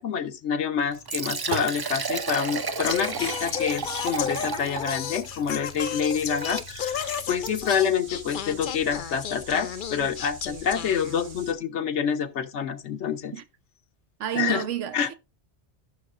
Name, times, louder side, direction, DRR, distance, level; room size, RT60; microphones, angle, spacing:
voice 1, 0.0-13.4 14.3-14.6 14.9-15.1, left 7 dB, 75° left, 1.2 m, -27 dB
Liquid, 0.9-7.8, right 5 dB, 40° right, 0.3 m, -33 dB
Singing, 2.8-11.5, left 9 dB, 55° left, 0.6 m, -33 dB
sound 1, 6.1-11.5, right 5 dB, 65° right, 1.4 m, -47 dB
voice 2, 14.2-15.1, right 11 dB, 85° right, 1.1 m, -30 dB
14.5 x 6.4 x 2.5 m
omnidirectional pair, 1.2 m